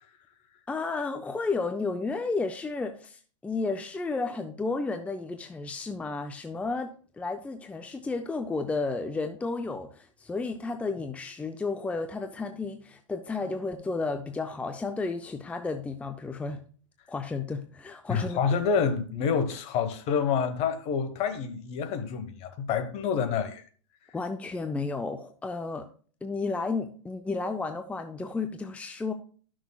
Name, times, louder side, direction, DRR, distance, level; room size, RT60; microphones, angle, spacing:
voice 1, 0.7-16.7 17.1-18.6 24.1-25.9 26.2-29.1, left 3 dB, 10° left, 0.5 m, -32 dB
voice 2, 18.1-23.6, left 6 dB, 40° left, 1.2 m, -28 dB
12.5 x 6.2 x 2.3 m
hypercardioid pair, 115°, 16 cm